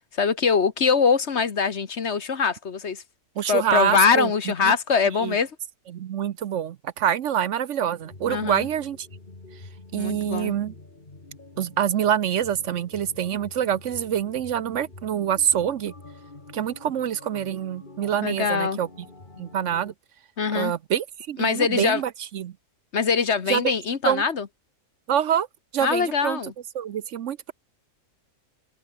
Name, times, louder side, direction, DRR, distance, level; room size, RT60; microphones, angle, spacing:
voice 1, 0.1-3.0 3.5-5.5 8.3-8.7 10.0-10.5 18.2-18.8 20.4-20.7 21.4-22.0 22.9-24.5 25.8-26.5, left 5 dB, 55° left, 1.6 m, -23 dB
voice 2, 3.4-4.5 5.1-5.4 5.9-9.1 9.9-10.7 11.6-15.9 16.5-18.9 19.4-19.9 20.5-22.5 23.5-23.7 24.0-24.2 25.1-25.5 25.7-26.4 26.7-27.5, right 9 dB, 65° right, 1.0 m, -26 dB
sound 1, 8.0-19.9, left 2 dB, 35° left, 3.0 m, -46 dB
omnidirectional pair, 1.4 m